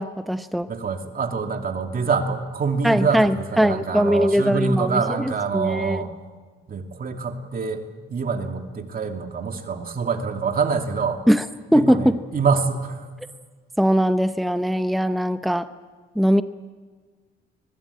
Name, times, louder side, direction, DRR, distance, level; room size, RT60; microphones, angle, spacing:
voice 1, 0.0-0.7 2.8-6.0 11.3-11.4 11.7-12.2 13.8-15.7 16.2-16.4, equal, ahead, 10 dB, 0.9 m, -20 dB
voice 2, 0.7-6.1 6.7-7.8 8.1-11.2 11.7-13.1, right 5 dB, 45° right, 4 dB, 2.7 m, -25 dB
24.0 x 20.5 x 8.6 m, 1.4 s
cardioid pair, 90°, 20 cm